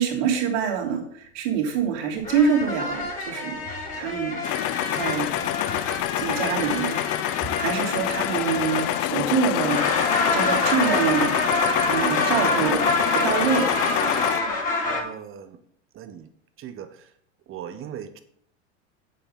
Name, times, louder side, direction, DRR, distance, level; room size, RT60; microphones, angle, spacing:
voice 1, 0.0-3.7 3.9-4.4 4.9-5.3 6.2-7.0 7.6-9.8 10.3-11.4 11.9-13.7, right 6 dB, 65° right, -1 dB, 3.3 m, -25 dB
sound 1, 2.2-9.2 9.6-15.0, left 2 dB, 20° left, 3.6 m, -27 dB
sound 2, 4.4-14.4, left 16 dB, 40° left, 0.5 m, -26 dB
voice 2, 14.8-15.6 15.9-16.3 16.6-17.1 17.5-18.2, right 9 dB, 35° right, 10 dB, 1.3 m, -39 dB
8.5 x 7.8 x 5.4 m, 0.66 s
hypercardioid pair, 100°, 36 cm